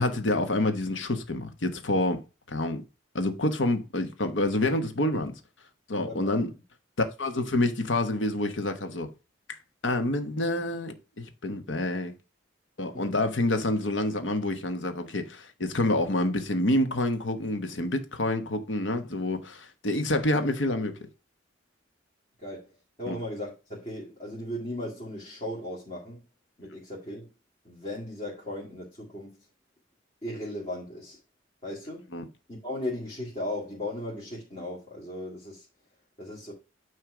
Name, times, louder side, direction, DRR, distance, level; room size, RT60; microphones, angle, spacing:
voice 1, 0.0-2.2 2.5-2.8 3.1-5.4 5.9-6.5 7.0-9.1 9.5-9.6 9.8-12.1 12.8-21.0 23.1-23.2 32.1-32.2, left 1 dB, 80° left, 1.1 m, -27 dB
voice 2, 5.9-6.4 12.9-13.1 22.4-26.2 26.6-27.3 27.6-29.5 30.2-31.2 31.6-32.1 32.5-35.7 36.2-36.5, left 1 dB, 35° left, 2.1 m, -37 dB
9.2 x 3.2 x 4.9 m
head